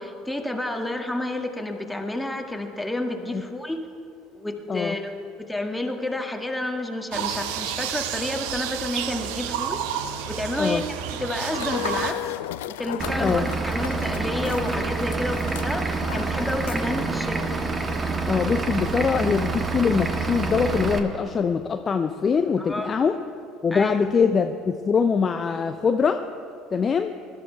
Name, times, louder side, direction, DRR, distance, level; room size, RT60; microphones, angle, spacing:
voice 1, 0.0-3.8 4.3-5.1 5.4-9.8 10.2-12.2 12.7-17.5 22.6-22.9 23.7-24.0, left 1 dB, 5° left, 3 dB, 1.7 m, -30 dB
sound 1, 7.1-12.1, right 9 dB, 65° right, 0.8 m, -30 dB
sound 2, 11.5-17.1, left 15 dB, 70° left, 0.3 m, -36 dB
Vehicle / Engine, 13.0-21.0, right 3 dB, 25° right, 1.5 m, -27 dB
voice 2, 18.3-23.2 23.6-26.2 26.7-27.1, left 6 dB, 30° left, 7 dB, 0.6 m, -23 dB
20.5 x 12.0 x 4.6 m, 2.5 s
figure-of-eight pair, 60°, 0 cm